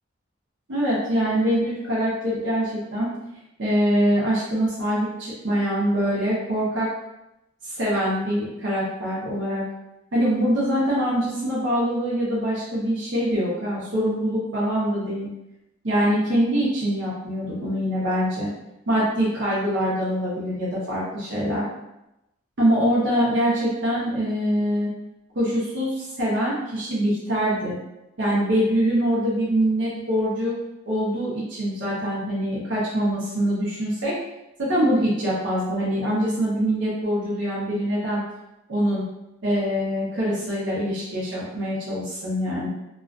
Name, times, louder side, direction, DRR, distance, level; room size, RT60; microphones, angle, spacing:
voice 1, 0.7-3.2 3.6-6.9 7.6-9.7 10.1-15.3 15.8-18.5 18.9-21.6 22.6-24.9 25.3-27.8 28.2-30.6 30.9-34.2 34.6-38.2 38.7-39.1 39.4-42.7, equal, 65° right, -8 dB, 0.7 m, -24 dB
2.3 x 2.2 x 2.4 m, 0.91 s
head